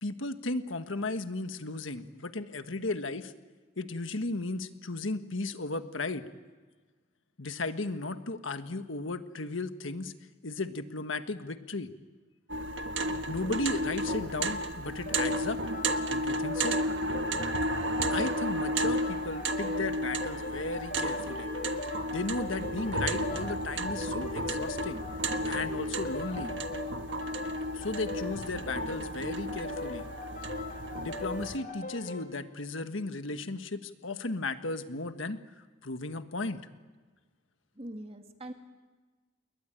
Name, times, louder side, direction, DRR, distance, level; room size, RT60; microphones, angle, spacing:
voice 1, 0.0-3.3 3.8-6.3 7.4-10.1 10.4-11.9 13.3-15.6 16.1-16.8 18.1-21.5 22.1-25.0 25.4-26.5 27.7-30.0 31.0-35.4 35.8-36.6, left 2 dB, 80° left, 9 dB, 1.5 m, -35 dB
sound 1, 12.5-31.6, right 1 dB, 65° right, 1.5 m, -33 dB
sound 2, 14.8-32.3, left 2 dB, 45° left, 5.5 m, -41 dB
voice 2, 37.8-38.5, right 1 dB, 30° right, 5 dB, 2.2 m, -42 dB
29.5 x 22.0 x 9.0 m, 1.3 s
head